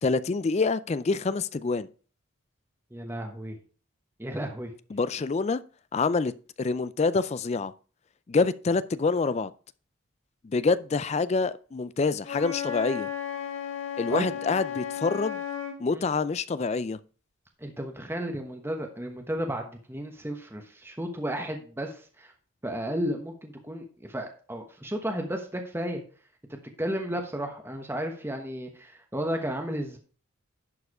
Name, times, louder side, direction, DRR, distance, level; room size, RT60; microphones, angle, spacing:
voice 1, 0.0-1.9 4.9-5.6 5.9-6.3 6.6-7.7 8.3-9.5 10.4-13.1 14.0-15.4 15.8-17.0, left 4 dB, 30° left, 0.3 m, -26 dB
voice 2, 2.9-3.6 4.2-4.7 14.1-14.3 15.9-16.0 17.6-22.3 22.6-26.0 26.5-30.0, equal, 10° right, 1.1 m, -33 dB
Wind instrument woodwind instrument, 12.2-15.8, left 8 dB, 70° left, 2.2 m, -34 dB
11.0 x 4.7 x 4.8 m
head